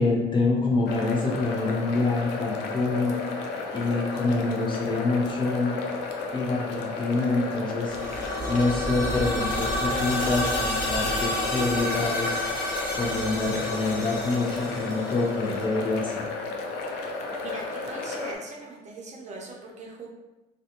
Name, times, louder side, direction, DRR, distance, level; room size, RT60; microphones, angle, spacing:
voice 1, 0.0-3.2 3.7-5.8 6.3-8.2 8.5-12.4 12.9-16.3, left 3 dB, 30° left, -2 dB, 0.5 m, -26 dB
sound 1, 0.9-18.4, left 3 dB, 90° left, 0.4 m, -33 dB
sound 2, 7.8-15.6, equal, 55° left, 0.9 m, -30 dB
voice 2, 17.4-20.1, right 3 dB, 45° right, -2 dB, 0.6 m, -40 dB
2.5 x 2.1 x 2.8 m, 1.0 s
cardioid pair, 110°, 17 cm